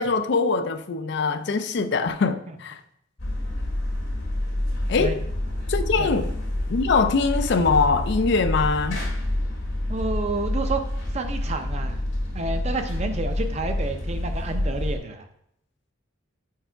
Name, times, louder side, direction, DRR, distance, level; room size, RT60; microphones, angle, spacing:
voice 1, 0.0-2.8 4.9-5.2 5.7-6.3 6.7-9.0, left 4 dB, 55° left, 0.4 m, -23 dB
sound 1, 3.2-15.0, left 1 dB, 80° left, 1.8 m, -28 dB
voice 2, 9.9-10.8 11.1-12.0 12.3-15.2, right 3 dB, 35° right, 0.5 m, -30 dB
4.7 x 4.6 x 4.5 m
head